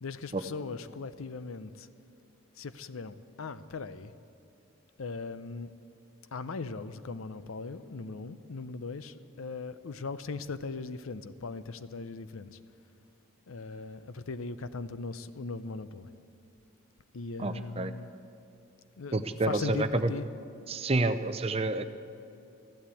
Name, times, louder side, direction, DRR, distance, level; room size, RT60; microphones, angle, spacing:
voice 1, 0.0-1.9 2.6-4.1 5.0-5.7 6.3-12.6 13.5-16.1 17.1-18.1 19.0-20.3, left 4 dB, 80° left, 13 dB, 0.6 m, -39 dB
voice 2, 17.4-17.9 19.1-20.1 20.7-21.9, right 2 dB, 30° right, 11 dB, 0.5 m, -29 dB
14.5 x 11.5 x 8.3 m, 2.7 s
head